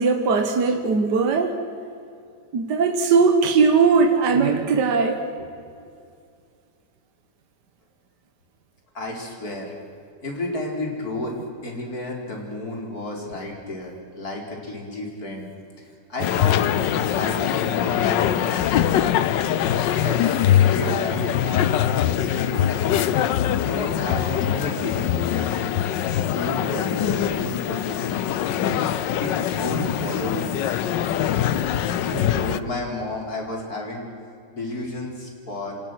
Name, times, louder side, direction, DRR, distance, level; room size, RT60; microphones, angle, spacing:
voice 1, 0.0-1.6 2.5-5.2 28.6-28.9, right 5 dB, 70° right, 5 dB, 1.9 m, -19 dB
voice 2, 8.9-9.7 10.2-11.3 11.6-15.5 15.8-16.7 17.0-18.9 19.6-22.6 23.6-25.7 26.3-28.4 29.2-30.5 31.8-34.1 34.5-35.8, left 2 dB, 55° left, 0 dB, 4.8 m, -32 dB
sound 1, 16.2-32.6, left 10 dB, 90° left, 1.5 m, -23 dB
27.0 x 27.0 x 6.3 m, 2.4 s
omnidirectional pair, 1.9 m